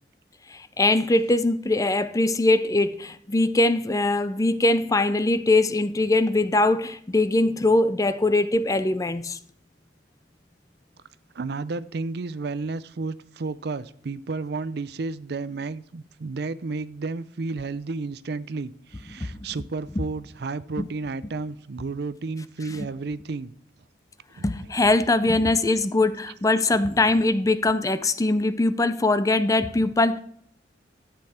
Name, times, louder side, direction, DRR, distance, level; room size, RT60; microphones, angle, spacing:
voice 1, 0.5-9.4 19.2-19.3 20.8-20.9 22.8-22.9 24.4-30.2, left 2 dB, 20° left, 0.5 m, -22 dB
voice 2, 11.3-23.5 24.3-24.5, right 3 dB, 60° right, 0.5 m, -32 dB
13.0 x 8.5 x 4.3 m
head